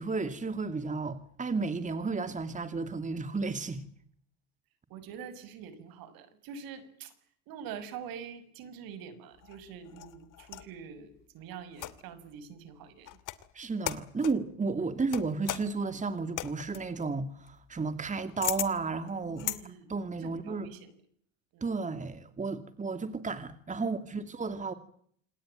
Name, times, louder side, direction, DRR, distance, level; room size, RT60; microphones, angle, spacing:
voice 1, 0.0-3.8 13.5-19.4 19.9-20.7 21.6-24.7, right 4 dB, 20° right, 2.5 m, -33 dB
voice 2, 4.9-7.1 7.5-13.2 19.2-19.9 20.2-20.9 21.5-21.7 23.8-23.9, right 7 dB, 65° right, 6.3 m, -45 dB
sound 1, 9.4-10.8 11.7-12.2 13.0-13.5 13.8-14.4 15.1-19.6, left 14 dB, 55° left, 2.6 m, -38 dB
28.0 x 20.0 x 9.0 m
hypercardioid pair, 80°, 38 cm